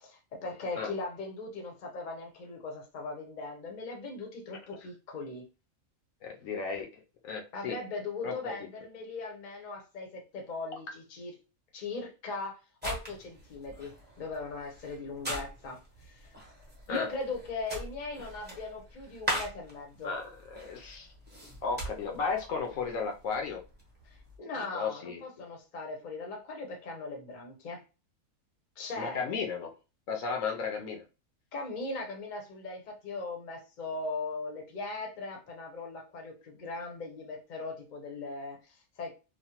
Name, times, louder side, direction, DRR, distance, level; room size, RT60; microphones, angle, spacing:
voice 1, 0.0-5.5 7.5-11.3 11.7-16.3 16.9-20.1 24.0-27.8 28.8-29.2 31.5-39.1, left 3 dB, 40° left, 1 dB, 0.7 m, -39 dB
voice 2, 6.2-6.9 7.2-7.8 8.2-8.5 16.9-17.1 20.0-21.1 21.6-23.6 24.6-25.2 29.0-29.7 30.1-31.0, left 5 dB, 70° left, 3 dB, 1.0 m, -34 dB
sound 1, 12.8-24.4, right 1 dB, 10° right, 0.7 m, -42 dB
3.0 x 2.1 x 2.8 m, 0.31 s
omnidirectional pair, 1.5 m